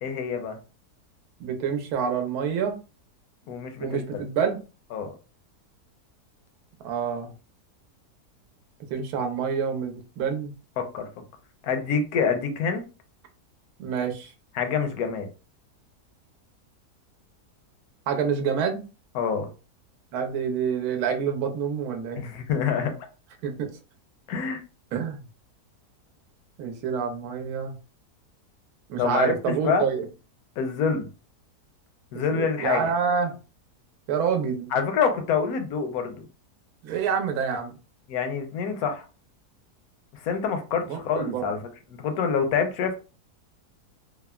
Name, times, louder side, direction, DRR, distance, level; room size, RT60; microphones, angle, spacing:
voice 1, 0.0-0.6 3.5-4.2 4.9-5.1 10.8-11.1 11.6-12.8 14.5-15.3 19.1-19.5 22.2-22.9 24.3-24.6 29.0-29.9 30.6-31.1 32.1-32.9 34.7-36.2 38.1-39.0 40.2-41.6 42.0-42.9, left 6 dB, 70° left, 1.0 m, -26 dB
voice 2, 1.4-2.8 3.8-4.6 6.8-7.3 8.9-10.5 13.8-14.3 18.1-18.8 20.1-22.2 23.4-23.7 24.9-25.2 26.6-27.8 28.9-30.0 32.1-33.3 34.1-34.7 36.8-37.7 40.9-41.5, right 6 dB, 75° right, 1.1 m, -27 dB
3.4 x 2.0 x 2.2 m
omnidirectional pair, 1.8 m